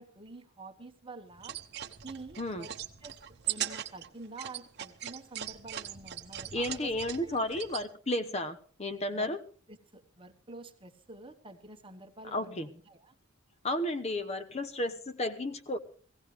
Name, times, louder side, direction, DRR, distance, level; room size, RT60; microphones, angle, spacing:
voice 1, 0.0-1.6 2.0-3.2 3.4-6.9 7.2-7.3 9.1-9.3 9.7-13.1, right 2 dB, 25° right, 6 dB, 1.2 m, -48 dB
sound 1, 1.3-7.8, right 11 dB, 55° right, 0.9 m, -40 dB
voice 2, 6.5-9.4 12.3-12.7 13.6-15.8, left 1 dB, 30° left, 10 dB, 0.9 m, -33 dB
17.5 x 16.0 x 3.3 m, 0.43 s
head